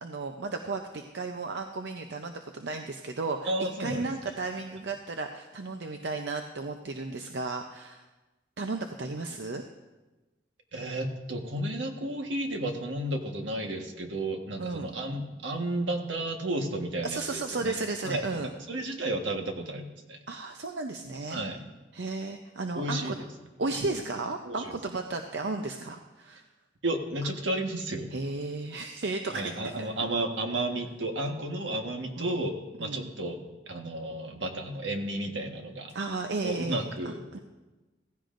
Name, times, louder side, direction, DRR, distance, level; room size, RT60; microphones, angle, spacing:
voice 1, 0.0-8.0 8.6-9.6 14.6-14.9 17.0-18.5 20.3-21.4 21.9-23.2 23.6-26.4 28.1-29.9 32.2-32.4 32.8-33.1 35.9-37.4, right 3 dB, 70° right, 5 dB, 0.6 m, -34 dB
voice 2, 3.5-4.1 10.7-17.7 18.0-18.2 18.7-20.2 21.3-21.6 22.7-23.3 24.4-24.7 26.8-28.1 29.3-32.5 32.8-35.9 36.4-37.2, right 1 dB, 90° right, 3 dB, 1.4 m, -32 dB
16.0 x 15.5 x 2.6 m, 1.1 s
head